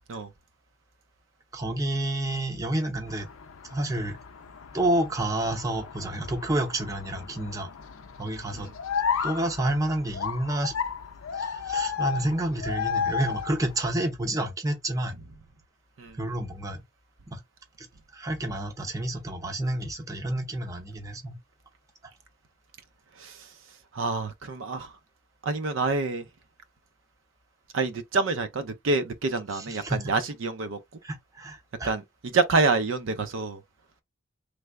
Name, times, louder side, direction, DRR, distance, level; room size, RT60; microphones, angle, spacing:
voice 1, 1.5-3.3 3.7-4.2 4.7-7.7 8.2-8.7 9.2-10.8 11.3-15.2 16.2-16.8 17.3-17.4 17.8-17.9 18.1-21.4 29.5-30.1 31.0-31.9, right 1 dB, 15° right, 0.6 m, -29 dB
sound 1, 3.1-13.9, left 6 dB, 85° left, 0.5 m, -33 dB
voice 2, 23.9-24.9 25.4-26.2 27.7-30.8 31.8-33.6, right 3 dB, 70° right, 0.5 m, -27 dB
3.3 x 2.0 x 3.5 m
head